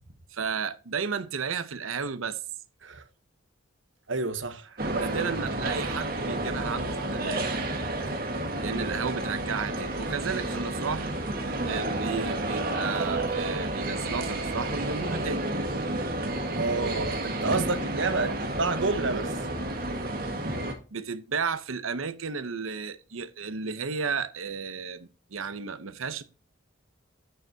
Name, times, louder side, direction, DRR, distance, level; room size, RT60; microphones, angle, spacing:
voice 1, 0.3-2.4 5.0-7.5 8.6-11.1 11.7-15.4 20.9-26.2, right 5 dB, 85° right, 0.8 m, -33 dB
voice 2, 4.1-5.2 16.6-19.3, right 3 dB, 65° right, 1.1 m, -29 dB
sound 1, 4.8-20.7, right 1 dB, 45° right, 1.7 m, -31 dB
11.0 x 6.7 x 2.8 m
head